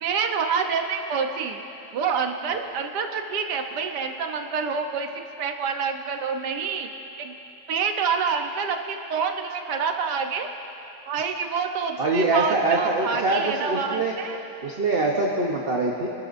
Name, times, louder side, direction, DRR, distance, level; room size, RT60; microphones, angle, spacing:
voice 1, 0.0-1.6 1.9-5.1 5.4-6.9 7.2-7.3 7.7-10.5 11.1-14.4, right 6 dB, 75° right, 5 dB, 1.5 m, -27 dB
voice 2, 12.0-14.1 14.6-16.1, right 2 dB, 40° right, -1 dB, 1.0 m, -24 dB
25.5 x 12.5 x 2.6 m, 3.0 s
omnidirectional pair, 1.8 m